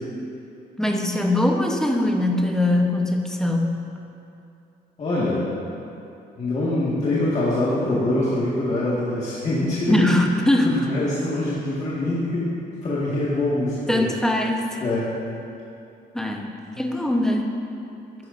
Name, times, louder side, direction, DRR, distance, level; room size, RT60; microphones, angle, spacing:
voice 1, 0.8-3.8 9.9-10.7 13.9-14.8 16.1-17.5, left 1 dB, 5° left, 1 dB, 1.0 m, -22 dB
voice 2, 5.0-5.4 6.4-10.1 10.6-12.5 12.8-14.1 14.8-15.1 16.7-16.8, left 2 dB, 40° left, -8 dB, 1.8 m, -24 dB
12.5 x 12.0 x 2.6 m, 2.6 s
cardioid pair, 130°, 17 cm